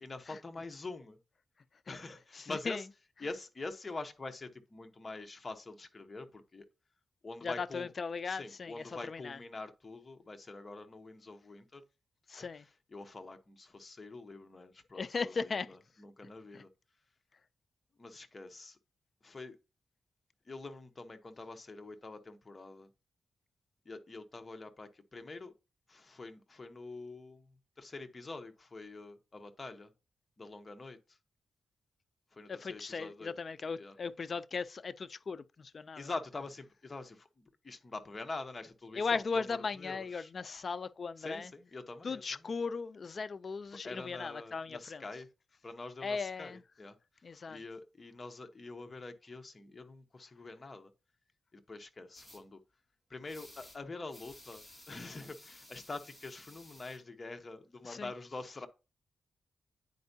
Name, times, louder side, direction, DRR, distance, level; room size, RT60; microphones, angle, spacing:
voice 1, 0.0-1.2 1.9-2.9 3.2-6.6 7.2-7.9 8.2-11.8 12.4-16.7 18.0-18.8 19.2-19.6 20.5-22.9 23.8-25.5 25.9-29.9 30.4-31.2 32.3-33.3 33.8-34.0 35.9-40.3 41.2-42.5 43.8-45.3 45.6-47.0 47.5-50.9 51.5-52.6 53.1-58.7, left 3 dB, 30° left, 0.9 m, -45 dB
voice 2, 2.3-2.8 7.4-9.4 12.3-12.6 14.9-15.7 16.5-16.6 32.5-36.1 39.0-41.5 42.0-45.0 46.0-46.6 47.2-47.6 57.8-58.1, left 4 dB, 50° left, 0.3 m, -37 dB
sound 1, 52.1-52.4 53.3-53.8 54.1-57.0, left 1 dB, 10° left, 2.0 m, -55 dB
9.3 x 4.4 x 2.7 m
wide cardioid pair, 105°, 0 cm